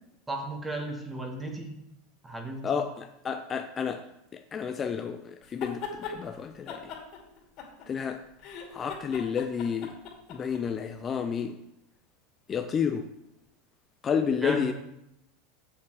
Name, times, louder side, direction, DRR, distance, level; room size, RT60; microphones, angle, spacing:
voice 1, 0.3-1.7 2.2-2.8 14.4-14.7, right 2 dB, 10° right, 1.7 m, -35 dB
voice 2, 2.6-4.1 4.3-6.8 7.9-8.2 8.7-9.9 10.3-11.6 12.5-13.1 14.0-14.7, left 7 dB, 30° left, 0.5 m, -30 dB
sound 1, 5.4-6.2 6.7-8.1 8.4-10.6, left 6 dB, 50° left, 2.5 m, -39 dB
7.2 x 7.0 x 4.9 m
supercardioid pair, 115°, 0 cm